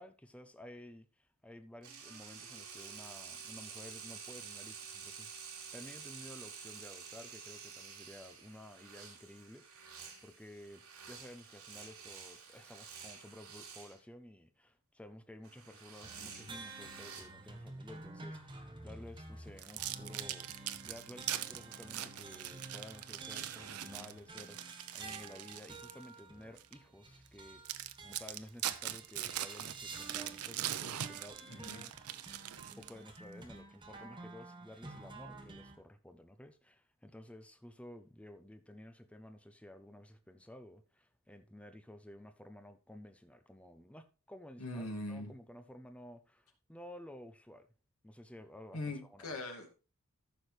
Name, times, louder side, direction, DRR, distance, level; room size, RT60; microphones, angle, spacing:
voice 1, 0.0-31.9 32.8-47.7 48.0-49.3, left 1 dB, 5° left, 0.6 m, -53 dB
sound 1, 1.8-14.0 15.4-17.2, right 6 dB, 70° right, 3.4 m, -50 dB
sound 2, 16.0-35.8, right 3 dB, 20° right, 1.5 m, -51 dB
sound 3, 19.6-26.0 26.6-26.7 27.3-27.4 27.7-33.2, right 12 dB, 90° right, 0.7 m, -41 dB
voice 2, 31.5-31.8 44.6-45.3 48.7-49.8, left 2 dB, 80° left, 2.3 m, -41 dB
14.0 x 6.3 x 3.3 m
head